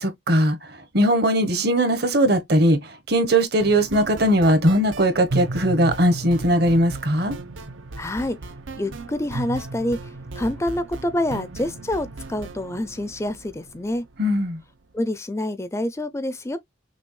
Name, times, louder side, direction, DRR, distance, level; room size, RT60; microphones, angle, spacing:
voice 1, 0.0-7.4 14.2-14.6, right 1 dB, 55° right, 1.1 m, -20 dB
Acid Adventures - Pink Arp, 3.6-14.5, right 2 dB, 85° right, 0.8 m, -35 dB
voice 2, 8.0-8.5 8.8-10.0 10.3-14.0 14.9-16.6, left 1 dB, 15° left, 0.4 m, -27 dB
6.1 x 2.3 x 3.1 m
head